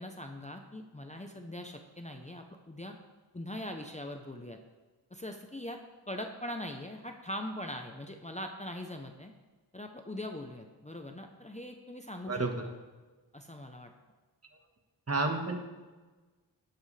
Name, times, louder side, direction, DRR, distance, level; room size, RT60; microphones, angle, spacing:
voice 1, 0.0-3.0 3.3-4.6 5.1-5.8 6.1-9.3 9.7-12.5 13.3-13.9, left 1 dB, 15° left, 3 dB, 0.8 m, -41 dB
voice 2, 15.1-15.6, right 3 dB, 35° right, 3 dB, 1.5 m, -30 dB
19.5 x 8.0 x 3.4 m, 1.3 s
wide cardioid pair, 95°, 44 cm